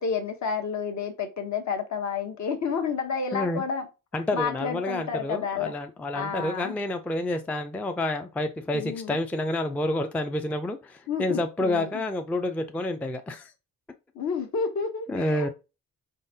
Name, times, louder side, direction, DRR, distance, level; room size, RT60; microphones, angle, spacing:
voice 1, 0.0-3.9 4.3-5.7 6.1-6.7 8.7-9.2 11.1-12.0 14.1-15.5, left 6 dB, 55° left, 1.0 m, -30 dB
voice 2, 3.3-3.6 4.1-13.5 15.1-15.5, left 1 dB, 5° left, 0.3 m, -29 dB
4.5 x 3.7 x 2.6 m
cardioid pair, 115°, 34 cm